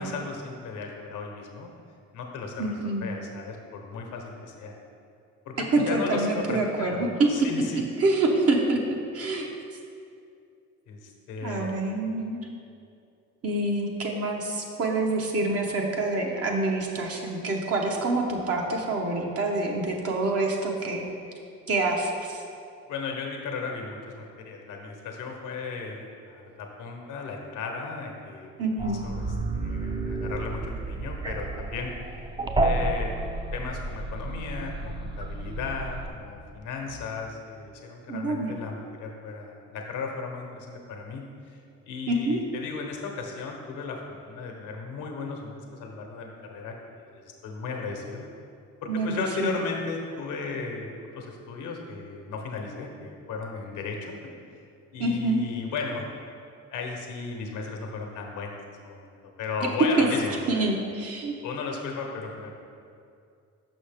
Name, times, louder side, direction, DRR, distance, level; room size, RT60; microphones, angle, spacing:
voice 1, 0.0-1.7 2.1-4.7 5.4-7.8 10.9-11.9 22.9-29.3 29.5-31.9 32.6-33.1 33.5-41.6 41.9-48.2 48.8-54.2 54.9-56.0 56.7-60.7 61.4-62.5, left 4 dB, 85° left, 1 dB, 0.9 m, -35 dB
voice 2, 2.6-3.1 5.7-7.3 8.0-8.8 9.1-9.5 11.4-12.5 13.4-21.1 21.7-22.4 28.6-29.1 38.1-38.5 42.1-42.4 48.9-49.6 55.0-55.4 60.0-60.1 60.5-61.4, right 2 dB, 50° right, 0 dB, 0.9 m, -26 dB
sound 1, 28.8-36.1, right 2 dB, 15° right, 0.4 m, -31 dB
6.2 x 5.6 x 3.4 m, 2.5 s
cardioid pair, 90°, 30 cm